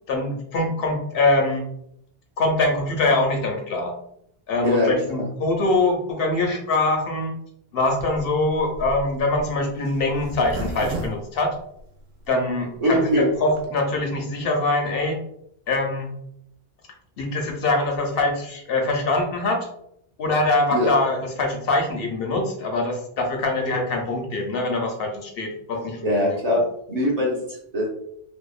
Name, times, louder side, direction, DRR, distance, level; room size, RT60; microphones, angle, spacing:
voice 1, 0.1-1.6 2.4-4.0 4.5-7.3 7.7-11.6 12.3-15.2 15.7-16.1 17.2-19.7 20.2-26.0, left 2 dB, 70° left, 1 dB, 0.7 m, -23 dB
voice 2, 4.6-5.1 12.8-13.3 20.7-20.9 26.0-26.6 26.9-27.9, equal, 45° right, -3 dB, 0.6 m, -22 dB
Zipper (clothing), 7.9-12.3 12.8-12.9 13.0-13.1 13.3-13.7, right 1 dB, 80° right, 0.8 m, -34 dB
2.7 x 2.1 x 2.3 m, 0.73 s
omnidirectional pair, 1.1 m